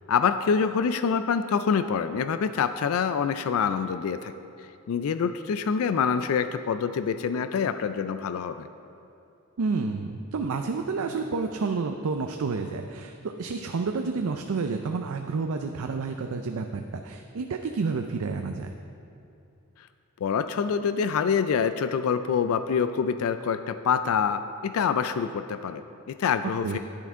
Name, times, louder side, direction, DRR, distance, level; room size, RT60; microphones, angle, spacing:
voice 1, 0.1-4.3 4.9-8.7 20.2-26.8, left 6 dB, 75° left, 11 dB, 0.3 m, -26 dB
voice 2, 9.6-18.7 26.6-26.8, right 4 dB, 80° right, 5 dB, 0.4 m, -30 dB
10.0 x 9.1 x 3.6 m, 2.7 s
head